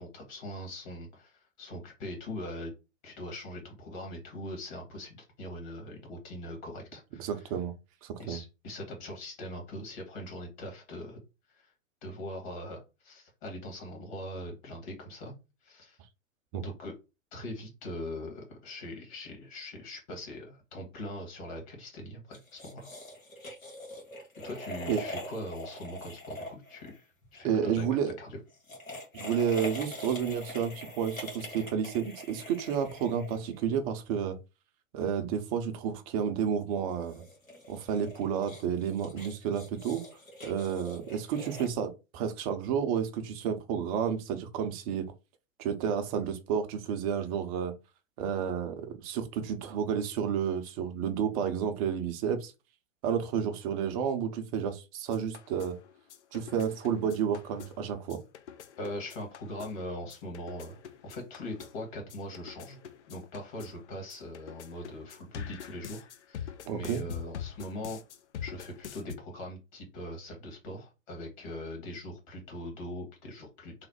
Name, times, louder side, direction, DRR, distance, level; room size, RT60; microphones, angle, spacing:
voice 1, 0.0-2.7 3.0-7.4 8.2-11.2 11.5-11.7 12.0-15.4 15.6-16.0 16.6-16.9 17.3-22.9 24.4-27.1 27.3-28.4 58.8-60.8 61.0-62.8 63.1-68.0 68.4-73.9, left 1 dB, 35° left, 1.5 m, -41 dB
voice 2, 7.2-7.7 8.0-8.4 16.5-16.6 24.9-25.0 27.4-28.1 29.1-34.4 34.9-37.2 37.7-40.0 40.4-45.1 45.6-47.7 48.2-52.5 53.0-55.8 56.3-58.2 66.7-67.0, right 8 dB, 30° right, 0.6 m, -31 dB
sound 1, 22.3-27.4 28.5-33.7 36.9-41.7, left 1 dB, 85° left, 1.6 m, -43 dB
sound 2, 55.1-69.2, left 9 dB, 60° left, 0.6 m, -45 dB
3.2 x 2.1 x 4.2 m
figure-of-eight pair, 115°, 40 cm